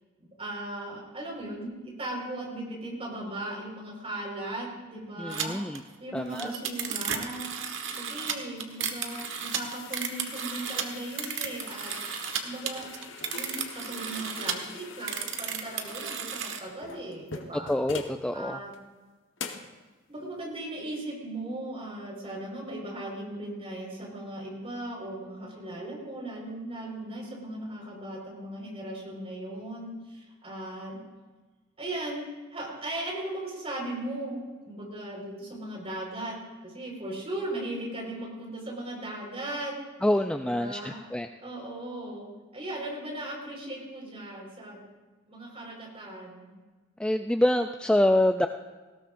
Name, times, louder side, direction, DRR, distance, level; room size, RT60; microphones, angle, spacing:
voice 1, 0.2-7.5 8.0-12.9 13.3-17.7 18.3-18.7 20.1-31.0 31.8-36.4 36.6-39.7 40.4-41.0 41.4-44.9 45.3-46.5, right 1 dB, 30° right, -2 dB, 4.6 m, -38 dB
voice 2, 5.2-5.8 6.1-6.5 17.7-18.6 40.0-41.3 47.0-48.5, left 1 dB, 5° left, 6 dB, 0.3 m, -26 dB
sound 1, 5.3-5.5 5.7-5.8 6.2-12.4 12.7-14.6 15.0-16.6, right 7 dB, 75° right, 1.3 m, -33 dB
sound 2, 8.6-18.2 18.7-18.8 19.4-19.7, left 4 dB, 75° left, 1.2 m, -43 dB
19.0 x 17.0 x 2.6 m, 1.3 s
head